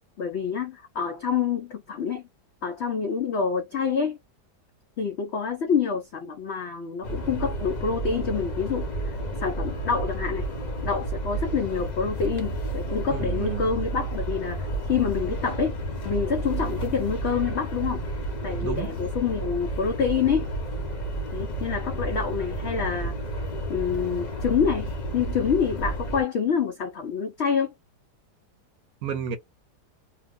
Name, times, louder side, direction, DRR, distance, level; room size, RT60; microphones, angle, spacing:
voice 1, 0.2-2.2 2.6-4.2 5.0-8.8 9.4-10.5 10.8-15.8 16.0-18.0 18.4-20.5 21.3-23.2 23.7-27.7, left 6 dB, 80° left, 0.6 m, -27 dB
sound 1, 7.0-26.2, right 1 dB, 35° left, 0.7 m, -31 dB
voice 2, 13.1-13.7 18.6-18.9 29.0-29.4, right 7 dB, 70° right, 1.0 m, -31 dB
2.8 x 2.0 x 3.5 m
omnidirectional pair, 1.8 m